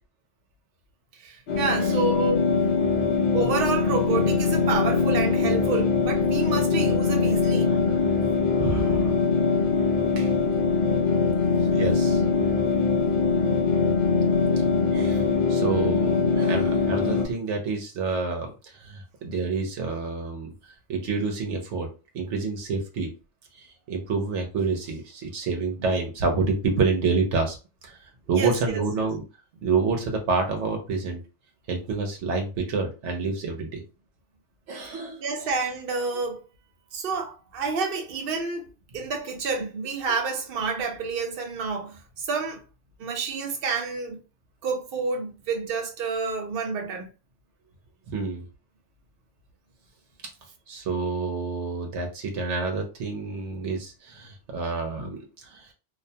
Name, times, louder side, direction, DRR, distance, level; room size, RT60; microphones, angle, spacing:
voice 1, 1.2-2.5 3.3-7.7 28.3-28.8 35.2-36.4 36.9-38.6 38.9-42.6 43.0-44.2 44.6-47.1, right 4 dB, 60° right, 0.8 m, -29 dB
sound 1, 1.5-17.3, left 4 dB, 60° left, 0.6 m, -22 dB
voice 2, 7.7-8.0 8.6-9.1 10.2-10.3 11.7-12.2 14.9-20.5 20.9-21.9 22.1-23.1 23.5-27.6 27.8-28.0 28.3-29.2 29.6-31.2 31.7-33.8 34.7-35.2 48.1-48.4 50.7-55.7, right 4 dB, 85° right, 0.9 m, -28 dB
2.5 x 2.1 x 2.7 m
omnidirectional pair, 1.2 m